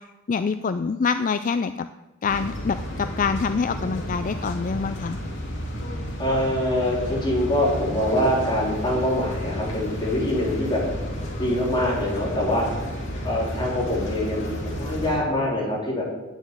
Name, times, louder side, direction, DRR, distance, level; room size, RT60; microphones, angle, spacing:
voice 1, 0.3-1.7 2.2-5.2, left 5 dB, 40° left, 10 dB, 0.4 m, -25 dB
sound 1, 2.2-15.2, equal, 65° left, 3.0 m, -32 dB
voice 2, 6.2-10.8 11.4-12.7 13.2-16.0, left 1 dB, 25° left, -4 dB, 4.1 m, -24 dB
9.5 x 7.2 x 9.0 m, 1.1 s
head